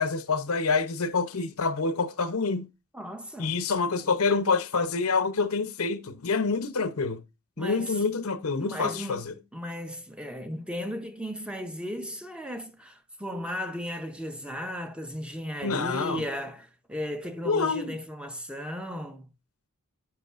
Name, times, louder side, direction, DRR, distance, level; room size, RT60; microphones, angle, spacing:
voice 1, 0.0-2.7 3.4-7.2 7.6-9.3 15.6-16.2 17.4-18.0, left 4 dB, 80° left, 0.8 m, -27 dB
voice 2, 2.9-3.6 7.6-8.0 8.6-19.3, equal, 5° right, 0.6 m, -36 dB
10.5 x 8.4 x 2.5 m
head